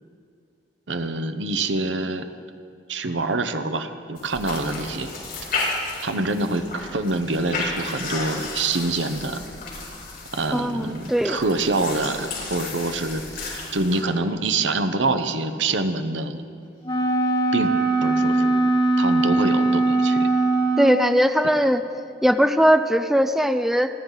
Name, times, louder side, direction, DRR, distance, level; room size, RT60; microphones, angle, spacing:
voice 1, 0.9-2.3 2.9-5.1 6.0-9.5 10.3-16.4 17.5-17.7 18.0-18.7 19.0-20.3, right 2 dB, 80° right, 9 dB, 1.0 m, -26 dB
sound 1, 4.2-14.0, left 3 dB, 55° left, 5.1 m, -33 dB
voice 2, 10.5-11.4 20.8-21.8 22.2-23.9, equal, ahead, 9 dB, 0.4 m, -19 dB
Wind instrument woodwind instrument, 16.8-21.1, right 2 dB, 25° left, 2.6 m, -21 dB
29.0 x 12.0 x 4.1 m, 2.3 s
head